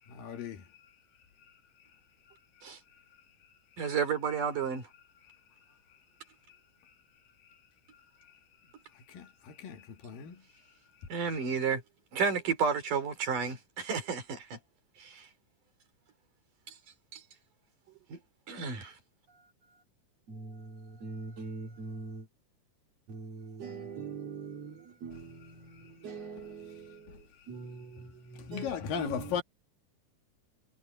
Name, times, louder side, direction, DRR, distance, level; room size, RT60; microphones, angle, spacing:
voice 1, 0.1-0.7 5.2-5.4 8.2-8.3 8.9-10.4 27.1-27.4 28.4-29.4, left 7 dB, 80° left, 3.8 m, -37 dB
voice 2, 3.8-4.8 11.1-11.8 12.1-14.6 15.0-15.3 17.1-17.2 18.1-18.2 18.5-18.9, right 6 dB, 70° right, 5.3 m, -31 dB
voice 3, 19.3-19.8 20.3-22.3 23.1-29.4, right 4 dB, 50° right, 4.3 m, -43 dB
omnidirectional pair, 3.9 m